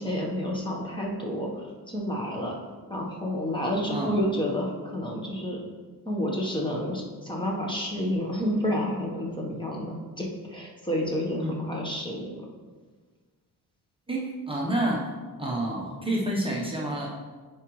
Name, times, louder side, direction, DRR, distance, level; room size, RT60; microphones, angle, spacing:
voice 1, 0.0-2.6 2.9-5.6 6.0-12.5, equal, 10° left, -1 dB, 1.2 m, -30 dB
voice 2, 3.9-4.2 11.4-11.6 14.1-15.1 15.4-17.1, right 1 dB, 15° right, -3 dB, 1.0 m, -29 dB
10.0 x 4.8 x 3.2 m, 1.4 s
wide cardioid pair, 145°, 39 cm